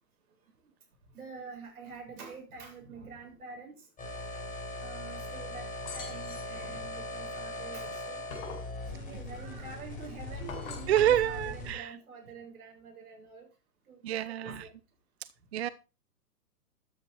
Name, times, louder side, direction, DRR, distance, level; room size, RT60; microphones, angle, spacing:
voice 1, 1.1-3.8 4.8-5.7 5.9-8.2 8.9-13.5 13.9-14.7, right 4 dB, 65° right, 3 dB, 7.1 m, -47 dB
sound 1, 4.0-11.7, left 2 dB, 15° left, 5.8 m, -40 dB
sound 2, 5.8-6.6 7.9-8.7 10.3-11.3, left 5 dB, 45° left, 6.1 m, -43 dB
voice 2, 10.9-12.0 14.0-14.7 15.5-15.7, right 11 dB, 45° right, 16 dB, 0.5 m, -27 dB
13.0 x 8.5 x 4.3 m, 0.31 s
figure-of-eight pair, 120°, 48 cm